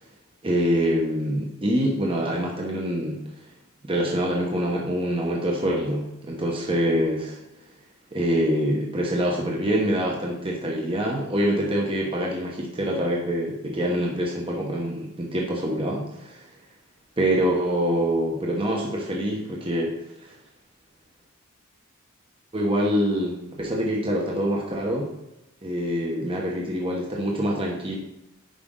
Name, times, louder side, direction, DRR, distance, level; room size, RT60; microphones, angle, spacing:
voice 1, 0.4-3.2 3.8-7.4 8.1-16.4 17.2-19.9 20.2-20.3 22.5-25.1 25.6-28.0, equal, 25° right, -2 dB, 1.2 m, -25 dB
10.5 x 5.0 x 3.9 m, 0.91 s
head